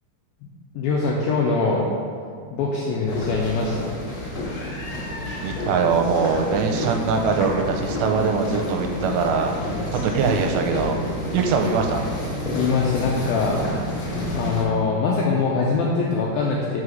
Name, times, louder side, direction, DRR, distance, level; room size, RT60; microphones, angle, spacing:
voice 1, 0.7-1.8 2.5-3.9 12.5-13.6 14.3-16.8, left 4 dB, 90° left, -3 dB, 2.1 m, -23 dB
sound 1, 3.1-14.6, left 1 dB, 40° left, 2.3 m, -30 dB
voice 2, 5.4-9.6 9.9-11.0 11.3-12.1, right 5 dB, 85° right, 3 dB, 2.8 m, -22 dB
5.9 x 4.9 x 6.2 m, 2.3 s
omnidirectional pair, 4.9 m